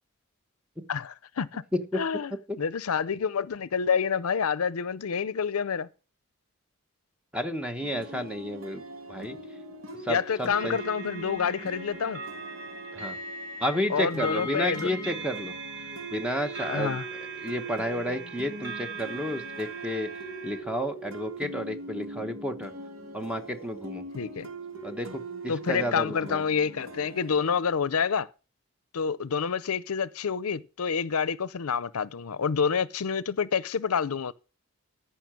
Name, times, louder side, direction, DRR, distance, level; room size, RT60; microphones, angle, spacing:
voice 1, 0.9-1.6 1.9-2.3 2.6-5.9 10.1-12.2 13.9-14.9 16.7-17.0 24.1-24.5 25.5-28.3 28.9-34.3, left 6 dB, 85° left, 0.6 m, -28 dB
voice 2, 7.3-8.8 9.1-9.4 10.0-10.8 12.9-13.2 13.6-15.5 16.1-17.0 17.4-20.1 20.4-22.7 23.1-24.0 24.8-26.4, equal, 5° right, 1.1 m, -31 dB
sound 1, 7.8-27.6, right 1 dB, 70° right, 1.8 m, -42 dB
sound 2, 10.5-20.6, right 2 dB, 55° right, 3.3 m, -40 dB
14.0 x 5.7 x 6.2 m
head